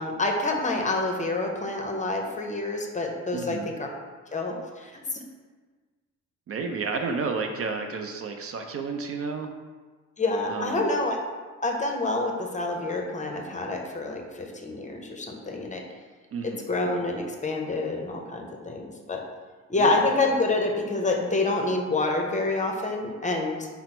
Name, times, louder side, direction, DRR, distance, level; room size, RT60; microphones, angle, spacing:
voice 1, 0.0-3.9 4.3-5.2 10.2-11.2 11.6-15.8 16.7-19.2 19.7-23.7, left 2 dB, 25° left, 2 dB, 0.7 m, -27 dB
voice 2, 3.3-3.7 6.5-9.5 10.5-10.9 16.3-16.7 19.8-20.0, right 4 dB, 50° right, 5 dB, 0.5 m, -31 dB
5.8 x 2.0 x 4.4 m, 1.4 s
cardioid pair, 90°, 30 cm